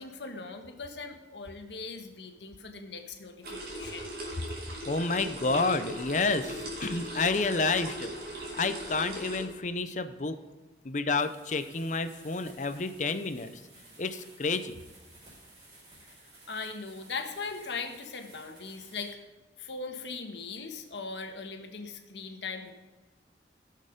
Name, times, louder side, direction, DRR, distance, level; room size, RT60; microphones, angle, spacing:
voice 1, 0.0-4.1 16.5-19.2 19.6-22.7, left 4 dB, 85° left, 5 dB, 1.4 m, -39 dB
sound 1, 3.4-9.4, right 1 dB, 60° right, 2.7 m, -39 dB
voice 2, 4.8-10.4 10.8-13.6 14.0-14.7, left 3 dB, 45° left, 11 dB, 0.7 m, -30 dB
sound 2, 11.1-19.1, right 2 dB, 25° right, 4.6 m, -56 dB
17.5 x 6.6 x 5.2 m, 1.2 s
head